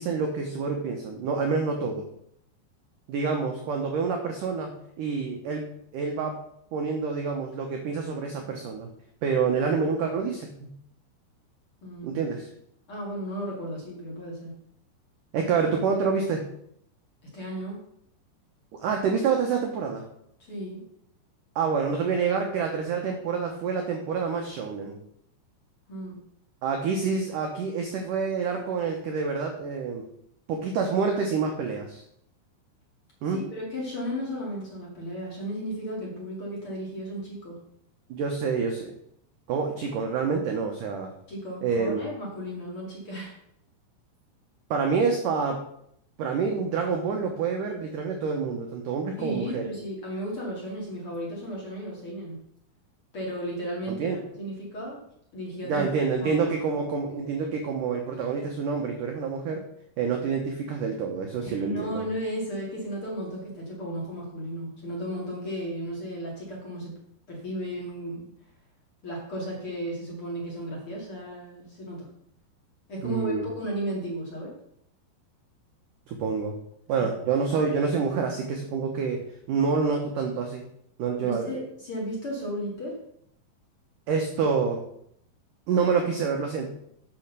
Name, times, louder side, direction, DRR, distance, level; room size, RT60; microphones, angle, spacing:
voice 1, 0.0-2.0 3.1-4.7 5.0-6.4 6.7-8.9 9.2-10.5 12.0-12.5 15.3-16.4 18.7-20.1 21.6-25.0 26.6-30.0 30.5-32.0 33.2-33.4 38.1-38.9 39.5-41.1 41.6-42.0 44.7-45.7 46.2-49.7 53.9-54.2 55.6-59.7 60.0-62.0 73.0-73.5 76.1-76.6 76.9-79.2 79.5-80.6 81.0-81.5 84.1-84.8 85.7-86.7, right 5 dB, 80° right, 3 dB, 1.8 m, -27 dB
voice 2, 11.8-12.2 12.9-14.5 17.2-17.8 20.5-20.8 25.9-26.2 33.2-37.6 41.3-43.3 49.2-52.4 53.1-55.0 55.3-55.9 56.2-56.5 61.4-66.9 67.3-68.2 69.0-72.1 72.9-74.5 77.0-77.1 81.2-82.9, equal, 40° left, -3 dB, 2.3 m, -34 dB
9.0 x 5.7 x 6.7 m, 0.71 s
omnidirectional pair, 5.2 m